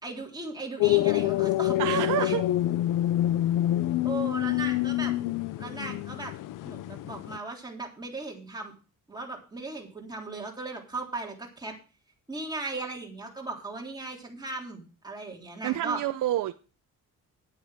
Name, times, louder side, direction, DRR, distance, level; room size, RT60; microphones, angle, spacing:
voice 1, 0.0-2.4 4.0-5.1 5.6-6.3 6.6-8.7 9.1-11.7 12.3-16.0, right 3 dB, 10° right, 3.3 m, -37 dB
sound 1, 0.8-7.4, left 15 dB, 75° left, 0.6 m, -26 dB
voice 2, 1.8-2.4 15.6-16.5, right 13 dB, 70° right, 0.7 m, -28 dB
10.5 x 9.3 x 4.9 m
cardioid pair, 135°, 32 cm